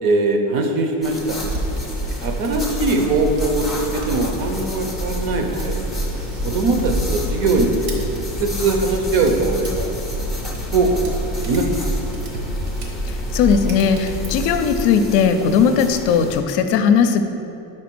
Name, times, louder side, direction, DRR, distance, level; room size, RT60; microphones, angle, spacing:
voice 1, 0.0-1.4 2.2-5.8 6.4-8.0 8.4-9.9 10.7-11.9, right 3 dB, 50° right, 4 dB, 0.8 m, -21 dB
sound 1, 1.0-16.4, left 2 dB, ahead, 0.5 m, -33 dB
sound 2, 1.4-14.8, right 1 dB, 70° right, 1.3 m, -28 dB
voice 2, 13.1-17.2, left 6 dB, 60° left, 8 dB, 0.5 m, -18 dB
5.1 x 4.4 x 6.0 m, 2.8 s
cardioid pair, 165°, 47 cm